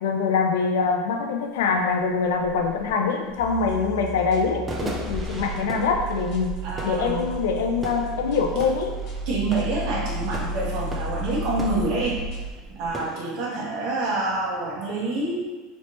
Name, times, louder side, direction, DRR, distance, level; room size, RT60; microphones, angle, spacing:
voice 1, 0.0-6.5 6.8-8.9, left 5 dB, 85° left, 3 dB, 0.5 m, -24 dB
sound 1, 1.3-1.4 1.7-13.2, right 2 dB, 20° right, 0.5 m, -38 dB
sound 2, 3.4-12.5, right 2 dB, 60° left, 0.8 m, -33 dB
voice 2, 6.6-7.3 9.3-12.2 12.7-15.5, right 3 dB, 60° right, -3 dB, 1.1 m, -27 dB
3.2 x 3.0 x 2.9 m, 1.3 s
supercardioid pair, 125°, 0 cm